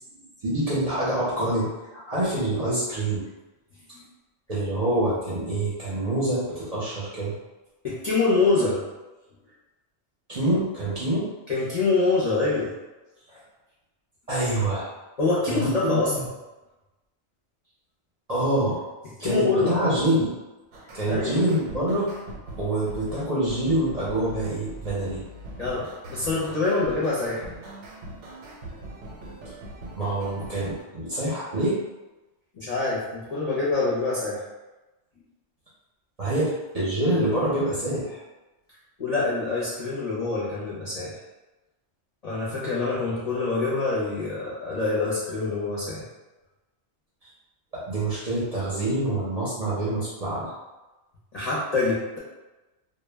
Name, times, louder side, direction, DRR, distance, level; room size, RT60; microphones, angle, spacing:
voice 1, 0.4-3.2 4.5-7.3 10.3-11.3 13.3-13.4 14.3-14.9 15.5-16.2 18.3-18.8 19.2-20.3 20.9-22.1 22.6-25.2 29.9-31.8 36.2-38.2 47.2-47.3 47.7-50.5, right 1 dB, 40° right, -9 dB, 0.6 m, -26 dB
voice 2, 7.8-8.8 11.5-12.7 15.2-16.1 19.2-19.9 21.1-21.3 25.6-27.4 32.6-34.4 39.0-41.1 42.2-46.0 51.3-52.2, left 3 dB, 45° left, -9 dB, 0.5 m, -25 dB
sound 1, 20.7-30.8, right 1 dB, 80° right, 0.9 m, -41 dB
2.1 x 2.1 x 3.2 m, 1.1 s
omnidirectional pair, 1.2 m